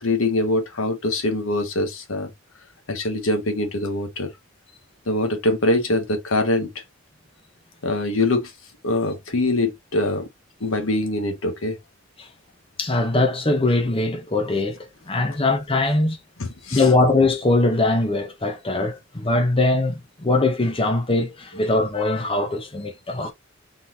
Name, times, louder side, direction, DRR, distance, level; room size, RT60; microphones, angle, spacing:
voice 1, 0.0-2.3 2.9-4.3 5.1-6.8 7.8-8.5 8.8-10.3 10.6-11.8 16.4-16.8, left 2 dB, 80° left, 1.2 m, -23 dB
voice 2, 12.8-16.2 16.7-23.3, left 2 dB, 25° left, 0.9 m, -21 dB
4.0 x 3.7 x 2.9 m
head